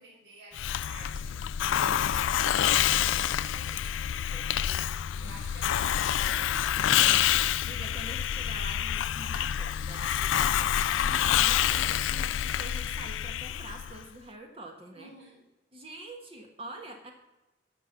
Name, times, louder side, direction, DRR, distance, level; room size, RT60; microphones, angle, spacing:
voice 1, 0.0-1.5 2.3-4.9 5.2-6.7 14.9-15.4, right 1 dB, 60° right, -5 dB, 3.8 m, -51 dB
Hiss, 0.5-14.0, left 10 dB, 85° left, 0.4 m, -27 dB
voice 2, 7.1-15.1 15.7-17.1, right 1 dB, 30° right, 2 dB, 1.4 m, -45 dB
13.5 x 5.3 x 7.2 m, 1.0 s
head